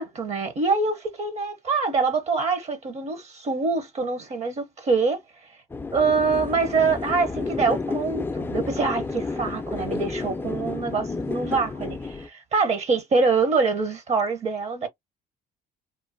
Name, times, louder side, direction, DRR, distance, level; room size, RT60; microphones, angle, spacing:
voice 1, 0.0-5.2 5.9-11.9 12.3-14.9, right 4 dB, 40° right, 0.7 m, -25 dB
sound 1, 5.7-12.3, left 3 dB, 15° left, 0.3 m, -31 dB
3.1 x 2.1 x 2.5 m
cardioid pair, 110°, 17 cm